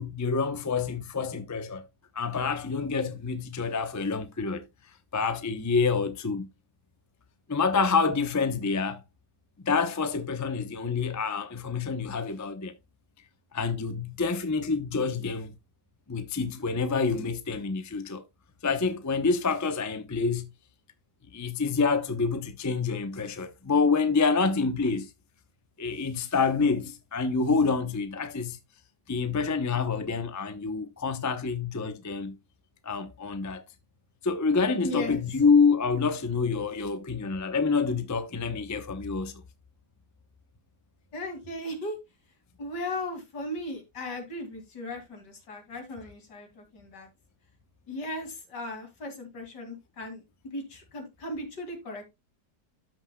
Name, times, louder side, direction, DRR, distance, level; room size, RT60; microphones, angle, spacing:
voice 1, 0.0-1.9 2.1-4.7 5.1-6.5 7.5-9.0 9.6-12.7 13.5-15.5 16.1-18.2 18.6-20.5 21.3-25.1 25.8-28.6 29.1-32.4 32.8-33.6 34.2-39.4, left 4 dB, 25° left, 0.4 m, -27 dB
voice 2, 34.8-35.2 41.1-42.0 42.6-47.1 47.9-50.2 50.5-52.1, left 1 dB, 80° left, 2.9 m, -37 dB
13.0 x 6.1 x 2.2 m
omnidirectional pair, 1.8 m